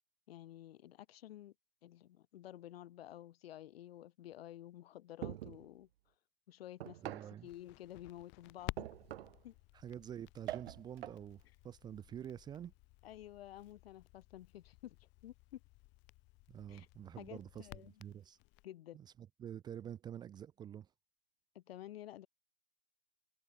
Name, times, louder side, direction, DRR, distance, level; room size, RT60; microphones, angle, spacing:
voice 1, 0.3-1.5 1.8-5.9 6.5-7.2 7.4-9.0 9.4-9.5 13.0-15.6 16.7-16.9 17.2-17.9 18.6-19.0 21.5-22.3, left 13 dB, 65° left, 0.9 m, -52 dB
sound 1, 5.2-5.7 6.8-7.4 8.8-9.4 10.5-11.2, right 13 dB, 65° right, 0.8 m, -44 dB
voice 2, 7.0-7.5 9.7-12.7 16.5-18.4 18.9-20.9, right 9 dB, 15° right, 0.6 m, -48 dB
Crackle, 7.4-18.6, left 24 dB, 35° left, 3.8 m, -54 dB
hypercardioid pair, 135°, 32 cm